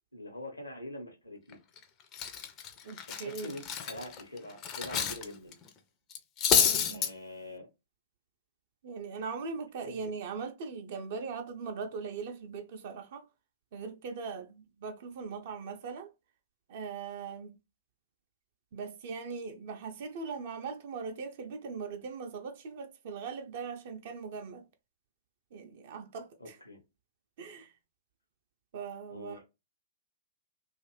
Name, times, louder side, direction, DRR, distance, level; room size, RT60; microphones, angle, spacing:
voice 1, 0.1-1.6 3.2-5.6 6.6-7.7 9.8-10.1 26.4-26.8 29.1-29.4, left 1 dB, 80° left, 0.9 m, -44 dB
Cutlery silverware, 1.5-1.8 2.1-5.2 5.5-5.7 6.1-7.1, left 7 dB, 30° left, 0.4 m, -29 dB
voice 2, 2.8-3.5 6.5-7.1 8.8-13.2 13.7-16.1 16.7-17.6 18.7-24.7 25.5-26.6 27.4-27.7 28.7-29.4, right 5 dB, 50° right, 0.4 m, -40 dB
2.5 x 2.4 x 3.0 m
figure-of-eight pair, 105°, 0 cm